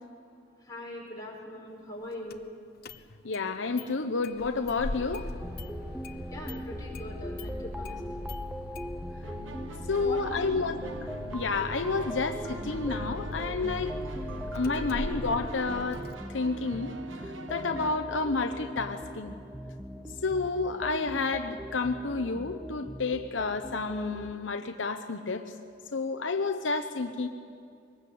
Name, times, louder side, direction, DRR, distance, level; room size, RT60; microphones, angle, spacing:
voice 1, 0.6-2.4 6.3-8.0 10.0-10.6, left 1 dB, 20° left, -2 dB, 5.4 m, -41 dB
Engine starting, 2.3-2.4 2.8-3.5 3.8-3.9 4.2-16.1, left 2 dB, 55° left, 0.9 m, -41 dB
voice 2, 3.2-5.3 9.9-13.9 14.5-16.0 16.3-16.9 17.5-19.3 20.2-25.5 25.9-27.3, left 4 dB, 75° left, 7 dB, 0.9 m, -30 dB
sound 1, 5.4-24.3, equal, 5° right, 0.7 m, -40 dB
sound 2, 9.2-17.9, right 1 dB, 85° right, 1.3 m, -43 dB
23.0 x 19.5 x 8.5 m, 2.4 s
head